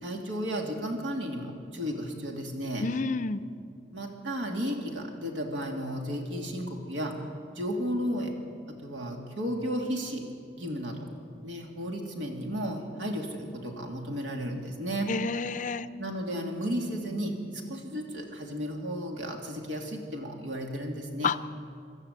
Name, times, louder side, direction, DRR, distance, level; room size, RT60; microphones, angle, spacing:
voice 1, 0.0-2.9 3.9-7.2 7.5-8.3 8.7-10.2 10.5-11.0 11.4-15.1 16.0-21.3, equal, 80° right, 1 dB, 2.7 m, -33 dB
voice 2, 2.8-3.4 15.1-15.9 21.2-21.4, left 4 dB, 40° left, 13 dB, 0.5 m, -29 dB
25.0 x 13.0 x 8.2 m, 2.4 s
head